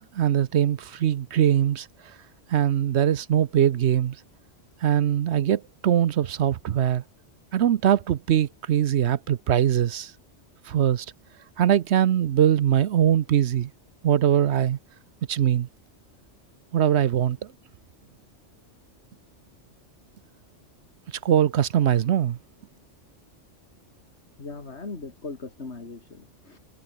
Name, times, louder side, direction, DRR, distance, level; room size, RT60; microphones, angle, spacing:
voice 1, 0.0-2.1 2.5-4.2 4.8-7.0 7.5-10.1 10.6-11.1 11.6-13.7 14.0-14.8 15.3-15.7 16.7-17.5 21.2-22.4, right 10 dB, 70° right, 1.0 m, -22 dB
voice 2, 24.4-26.6, left 3 dB, 65° left, 2.8 m, -39 dB
omnidirectional pair, 1.2 m